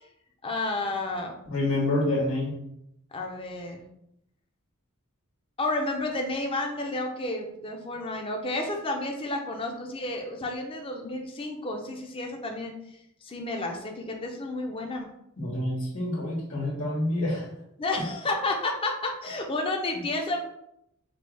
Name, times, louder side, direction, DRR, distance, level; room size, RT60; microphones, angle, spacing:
voice 1, 0.4-1.3 3.1-3.9 5.6-12.7 13.2-15.1 17.8-20.4, left 2 dB, 25° left, 2 dB, 0.6 m, -31 dB
voice 2, 1.5-2.6 15.4-17.5 18.0-18.1 19.9-20.0, left 1 dB, 65° left, -4 dB, 1.5 m, -27 dB
5.1 x 2.2 x 3.3 m, 0.79 s
head